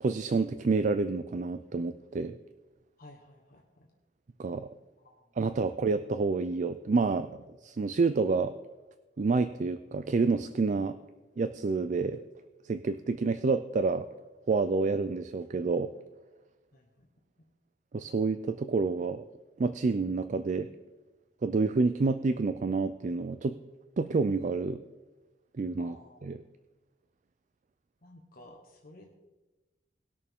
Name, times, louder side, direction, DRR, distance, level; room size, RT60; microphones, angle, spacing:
voice 1, 0.0-2.4 4.4-4.7 5.4-8.5 9.2-11.0 11.4-12.2 12.6-14.1 14.5-15.9 17.9-19.2 19.6-20.7 21.4-23.6 24.0-24.8 25.6-25.9 26.2-26.4, right 4 dB, 45° right, 11 dB, 0.4 m, -28 dB
voice 2, 3.0-3.9 5.0-5.1 16.7-17.1 25.8-26.3 28.0-29.1, left 1 dB, 55° left, 1 dB, 1.2 m, -54 dB
19.5 x 6.5 x 3.6 m, 1.1 s
head